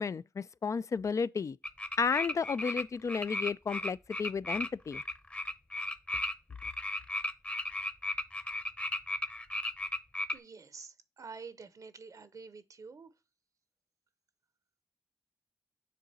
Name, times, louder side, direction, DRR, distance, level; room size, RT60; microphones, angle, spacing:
voice 1, 0.0-1.6 2.0-5.0, left 5 dB, 55° left, 0.3 m, -32 dB
sound 1, 1.6-2.8 3.1-10.3, left 1 dB, 20° left, 0.8 m, -35 dB
voice 2, 10.3-13.1, right 4 dB, 65° right, 0.7 m, -48 dB
6.8 x 3.7 x 4.1 m
cardioid pair, 45°, 6 cm